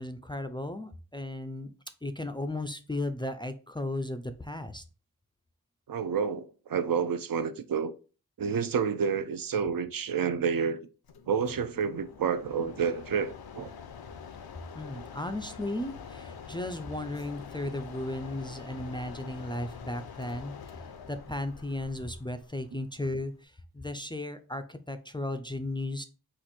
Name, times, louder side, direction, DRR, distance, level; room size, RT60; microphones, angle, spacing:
voice 1, 0.0-1.7 2.0-4.8 14.7-20.5 21.1-26.0, left 1 dB, 15° left, 0.3 m, -35 dB
voice 2, 5.9-7.9 8.4-10.9 11.3-13.7, right 6 dB, 65° right, 0.5 m, -29 dB
Mechanisms, 11.0-23.4, left 7 dB, 75° left, 0.5 m, -46 dB
4.3 x 2.5 x 4.1 m
wide cardioid pair, 70°, 38 cm